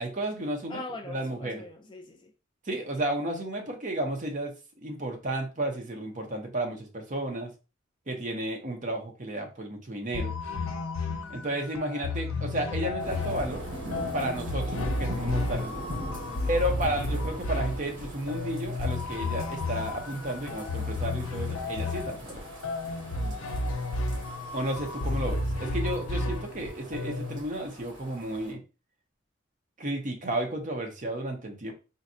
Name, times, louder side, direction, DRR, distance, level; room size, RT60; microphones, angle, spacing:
voice 1, 0.0-0.8 1.1-1.6 2.6-7.5 8.1-10.3 11.3-13.6 14.1-15.8 16.4-22.4 24.5-28.6 29.8-31.7, right 1 dB, 40° right, 3 dB, 0.7 m, -32 dB
voice 2, 0.7-2.3 16.2-16.6 23.1-24.0, left 2 dB, 25° left, 4 dB, 0.4 m, -43 dB
sound 1, 10.1-27.4, left 2 dB, 85° left, 0.5 m, -32 dB
sound 2, 13.0-28.5, equal, 70° right, 1.5 m, -41 dB
3.9 x 2.2 x 2.6 m, 0.32 s
head